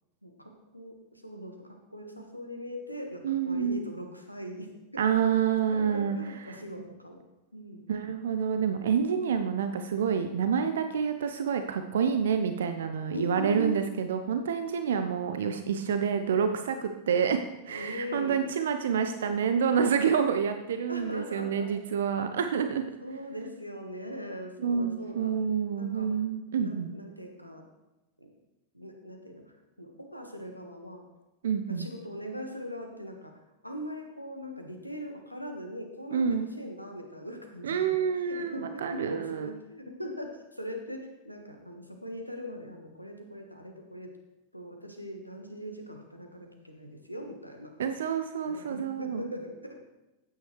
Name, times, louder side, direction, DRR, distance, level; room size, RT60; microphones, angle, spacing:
voice 1, 0.2-5.0 5.7-7.2 7.5-7.8 13.1-13.8 17.7-18.4 20.9-21.7 22.7-25.3 25.8-26.1 26.6-27.6 28.2-28.3 28.7-29.4 29.8-31.0 31.7-33.3 33.6-44.1 44.5-47.7 48.4-49.7, equal, 90° left, 3 dB, 1.6 m, -40 dB
voice 2, 3.2-3.8 5.0-6.2 6.5-6.6 7.9-17.4 17.7-22.8 24.6-26.9 31.4-31.9 36.1-36.5 37.6-39.5 47.8-49.3, right 7 dB, 65° right, 8 dB, 0.7 m, -28 dB
14.0 x 9.2 x 3.3 m, 1.0 s
figure-of-eight pair, 90°, 0 cm